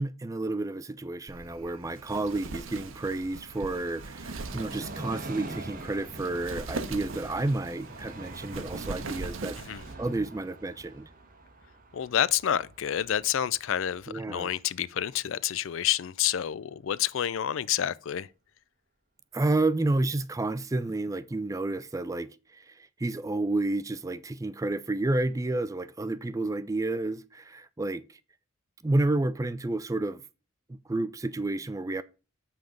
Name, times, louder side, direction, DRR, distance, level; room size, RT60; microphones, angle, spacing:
voice 1, 0.0-9.6 10.0-11.1 14.1-14.5 19.3-22.3 23.0-28.0 28.8-30.2 30.9-32.0, right 2 dB, 15° right, 0.4 m, -30 dB
Wind, 1.3-9.9, right 3 dB, 70° right, 0.8 m, -41 dB
Train, 1.8-15.2 15.5-15.6, right 2 dB, 40° right, 1.4 m, -45 dB
voice 2, 11.9-18.3, left 10 dB, 65° left, 0.4 m, -29 dB
7.7 x 5.8 x 5.0 m
head